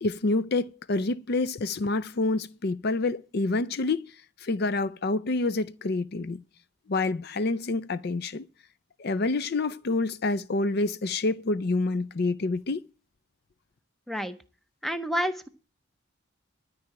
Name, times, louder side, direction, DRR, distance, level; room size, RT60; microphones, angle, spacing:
voice 1, 0.0-4.1 4.4-6.4 6.9-8.5 9.0-12.8, left 3 dB, 50° left, 0.5 m, -27 dB
voice 2, 14.8-15.5, equal, ahead, 0.6 m, -29 dB
12.5 x 4.8 x 8.7 m
head